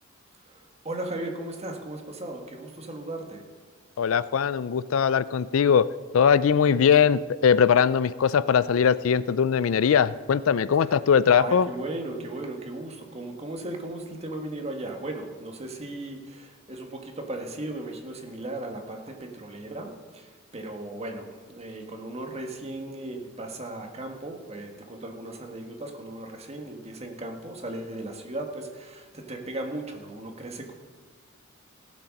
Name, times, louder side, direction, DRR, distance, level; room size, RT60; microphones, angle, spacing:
voice 1, 0.4-3.5 11.3-30.7, right 2 dB, 30° right, 2 dB, 1.6 m, -36 dB
voice 2, 4.0-5.9 6.1-11.7, left 7 dB, 80° left, 17 dB, 0.4 m, -21 dB
17.0 x 7.4 x 5.3 m, 1.5 s
head